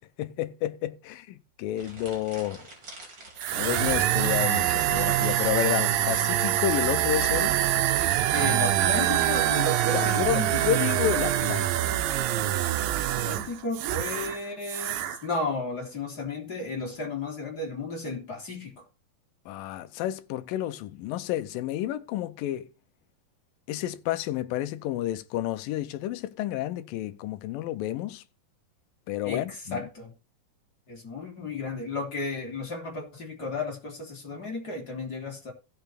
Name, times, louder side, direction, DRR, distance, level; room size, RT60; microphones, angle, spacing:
voice 1, 0.2-2.7 3.6-7.6 9.9-11.7 19.5-22.7 23.7-28.2 29.1-29.9, left 13 dB, 80° left, 2.5 m, -30 dB
sound 1, 1.7-5.4, right 2 dB, 30° right, 4.5 m, -46 dB
sound 2, 3.4-14.4 14.6-15.2, right 13 dB, 80° right, 2.4 m, -25 dB
voice 2, 8.3-10.6 12.9-18.8 29.2-30.1 30.9-35.5, left 3 dB, 30° left, 3.1 m, -34 dB
16.0 x 6.2 x 4.4 m
omnidirectional pair, 4.1 m